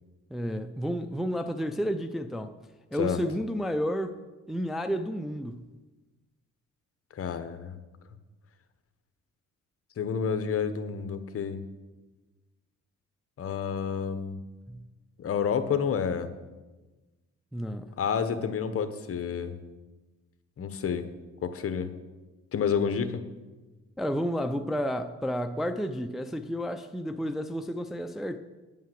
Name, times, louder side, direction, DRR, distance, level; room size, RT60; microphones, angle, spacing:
voice 1, 0.3-2.5 2.9-4.2 4.5-5.6 14.7-14.8 17.5-17.9 24.0-28.4, equal, ahead, 7 dB, 0.5 m, -31 dB
voice 2, 7.1-7.8 10.0-11.6 13.4-14.4 15.2-16.3 18.0-19.6 20.6-21.1 21.4-21.9 22.5-23.2, left 7 dB, 50° left, 10 dB, 1.0 m, -29 dB
9.5 x 5.6 x 7.6 m, 1.2 s
cardioid pair, 90°, 30 cm